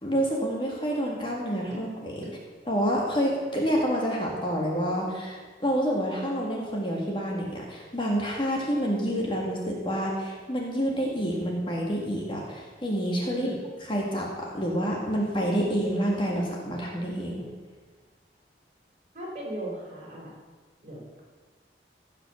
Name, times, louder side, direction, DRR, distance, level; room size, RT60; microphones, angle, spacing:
voice 1, 0.0-2.2 2.7-13.5 13.9-17.4, equal, 30° left, -1 dB, 2.0 m, -28 dB
voice 2, 13.3-13.6 19.1-20.3 20.8-21.2, right 1 dB, 40° right, -3 dB, 4.2 m, -37 dB
15.5 x 5.9 x 7.0 m, 1.4 s
head